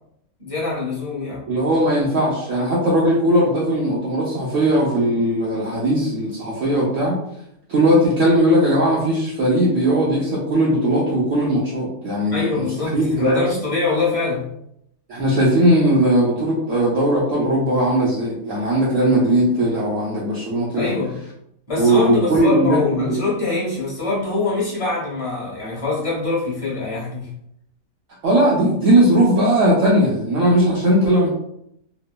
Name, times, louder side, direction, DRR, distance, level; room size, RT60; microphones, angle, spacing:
voice 1, 0.4-1.4 12.3-14.5 20.7-21.2 21.7-27.3, left 3 dB, 25° left, -7 dB, 1.0 m, -24 dB
voice 2, 1.5-7.2 7.7-13.4 15.1-20.9 21.8-23.2 28.2-31.3, right 1 dB, 65° right, -5 dB, 0.8 m, -18 dB
2.9 x 2.0 x 2.3 m, 0.75 s
omnidirectional pair, 1.6 m